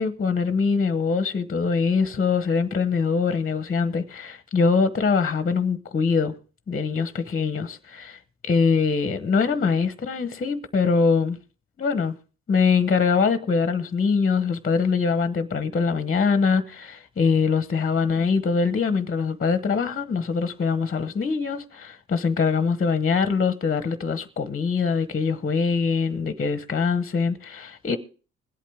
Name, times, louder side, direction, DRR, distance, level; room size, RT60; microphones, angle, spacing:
voice 1, 0.0-6.3 6.7-11.4 11.8-12.2 12.5-28.0, left 5 dB, 30° left, 1.0 m, -23 dB
21.0 x 8.4 x 3.5 m
cardioid pair, 90°, 30 cm